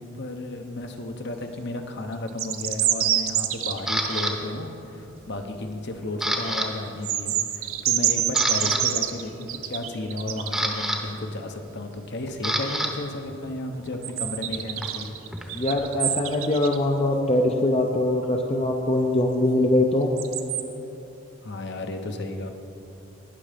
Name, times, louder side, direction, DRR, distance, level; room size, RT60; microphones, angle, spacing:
voice 1, 0.0-15.2 21.4-22.5, left 2 dB, 50° left, 5 dB, 0.9 m, -33 dB
sound 1, 2.3-4.3 6.9-10.6 14.0-16.8 20.2-20.6, right 11 dB, 75° right, 0.7 m, -26 dB
Camera, 3.9-4.3 4.9-5.3 5.6-6.7 6.9-7.1 7.7-7.8 8.2-8.8 10.0-12.9 13.2-15.8, equal, ahead, 0.9 m, -29 dB
voice 2, 15.5-20.1, left 1 dB, 30° left, 2 dB, 0.6 m, -22 dB
19.0 x 6.5 x 5.1 m, 3.0 s
head